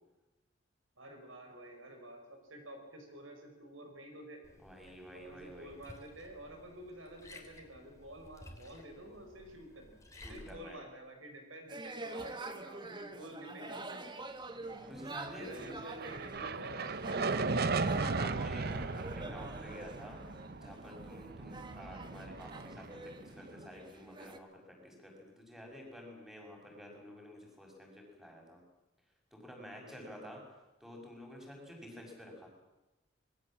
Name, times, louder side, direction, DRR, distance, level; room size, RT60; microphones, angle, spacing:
voice 1, 1.0-4.4 5.1-10.0 10.3-14.2 15.4-17.3 29.7-30.3, right 1 dB, 90° right, 4 dB, 5.5 m, -50 dB
Liquid, 4.4-10.6, left 1 dB, 15° left, 3.2 m, -55 dB
voice 2, 4.6-5.7 10.1-10.8 14.9-15.8 17.3-20.2 20.6-28.6 29.3-30.4 30.8-32.5, equal, ahead, 0 dB, 6.5 m, -50 dB
sound 1, 11.7-24.4, right 2 dB, 25° right, 1.5 m, -46 dB
sound 2, 15.3-23.7, right 4 dB, 50° right, 0.9 m, -37 dB
26.0 x 21.5 x 7.6 m, 1.0 s
head